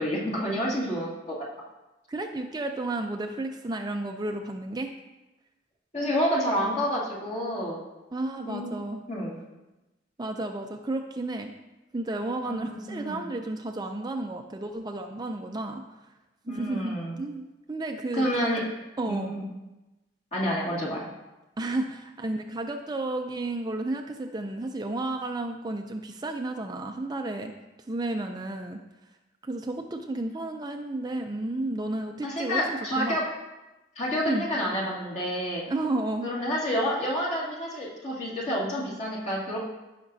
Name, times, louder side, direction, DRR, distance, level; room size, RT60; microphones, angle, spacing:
voice 1, 0.0-1.4 5.9-7.8 8.4-9.4 12.5-13.2 16.5-17.2 18.1-18.6 19.1-19.5 20.3-21.1 32.2-33.2 34.0-35.6 36.2-39.6, equal, 40° left, -5 dB, 2.2 m, -29 dB
voice 2, 2.1-4.9 8.1-9.0 10.2-11.5 11.9-15.8 16.5-18.5 19.0-19.3 21.6-27.5 27.9-28.8 29.4-33.2 34.3-34.4 35.7-36.3, right 2 dB, 20° right, 4 dB, 0.4 m, -32 dB
15.0 x 5.9 x 2.7 m, 1.1 s
head